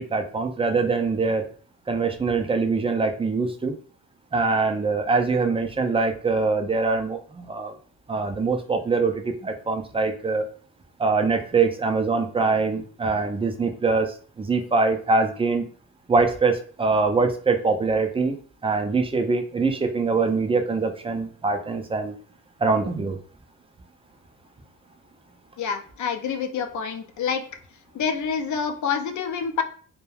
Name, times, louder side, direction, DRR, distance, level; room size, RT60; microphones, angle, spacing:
voice 1, 0.0-1.5 1.9-3.7 4.3-7.7 8.1-10.5 11.0-15.6 16.1-18.4 18.6-22.1 22.6-23.2, right 4 dB, 15° right, 5 dB, 0.4 m, -23 dB
voice 2, 25.6-27.4 27.9-29.6, left 6 dB, 50° left, 7 dB, 0.5 m, -27 dB
2.2 x 2.2 x 3.1 m, 0.43 s
supercardioid pair, 65°, 38 cm